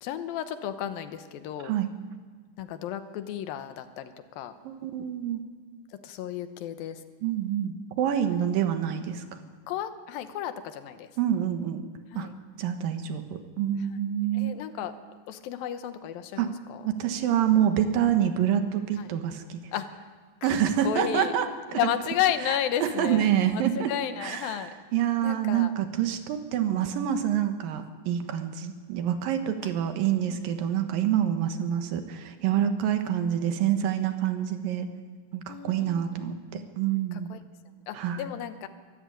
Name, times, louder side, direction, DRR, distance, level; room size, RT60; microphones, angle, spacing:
voice 1, 0.0-1.7 2.6-4.5 6.0-7.0 9.7-11.1 12.1-12.4 13.9-14.0 14.3-14.9 15.3-16.8 19.0-19.1 19.7-20.0 20.4-20.6 20.8-21.4 21.7-23.6 23.9-24.7 25.2-25.7 30.3-30.5 35.5-36.7 37.1-37.4 37.9-38.7, left 10 dB, 80° left, 10 dB, 2.8 m, -33 dB
voice 2, 4.6-5.4 7.2-9.2 11.2-11.8 12.2-12.3 12.6-14.6 16.4-16.5 17.0-19.6 20.4-21.8 22.8-23.9 24.2-24.6 24.9-34.9 35.3-37.3 37.9-38.3, right 10 dB, 75° right, 7 dB, 3.0 m, -27 dB
23.5 x 14.0 x 8.8 m, 1.5 s
omnidirectional pair, 4.1 m